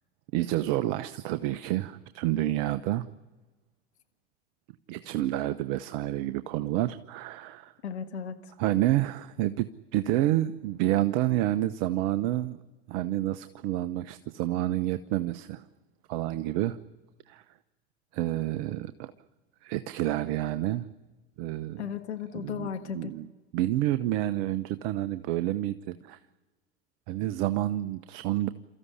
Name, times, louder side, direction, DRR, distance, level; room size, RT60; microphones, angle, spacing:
voice 1, 0.3-3.1 4.9-7.7 8.6-12.6 12.9-15.6 16.1-16.8 17.3-17.4 18.1-19.1 19.6-20.9 21.4-21.9 22.3-22.7 22.9-23.3 23.5-26.2 27.1-28.5, right 14 dB, 55° right, 13 dB, 0.9 m, -29 dB
voice 2, 7.8-8.5 21.8-23.1, left 8 dB, 85° left, 7 dB, 1.6 m, -35 dB
28.5 x 14.5 x 10.0 m, 1.2 s
hypercardioid pair, 90°, 32 cm